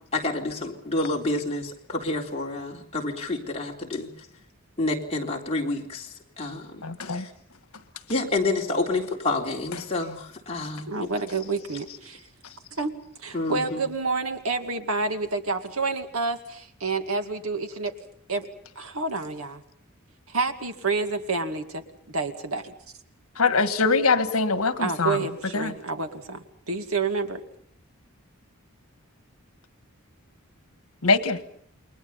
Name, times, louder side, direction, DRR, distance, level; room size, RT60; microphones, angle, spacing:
voice 1, 0.1-4.1 4.8-7.3 8.1-11.1 13.3-13.8, left 2 dB, 30° left, -1 dB, 3.6 m, -29 dB
voice 2, 6.8-7.2 23.4-25.2 25.5-25.7 31.0-31.4, left 4 dB, 80° left, 10 dB, 1.6 m, -22 dB
voice 3, 10.9-12.3 12.8-12.9 13.2-17.9 18.3-18.5 18.8-19.6 20.3-22.7 24.8-27.4, right 3 dB, 80° right, 6 dB, 2.3 m, -29 dB
29.0 x 22.5 x 5.6 m, 0.62 s
head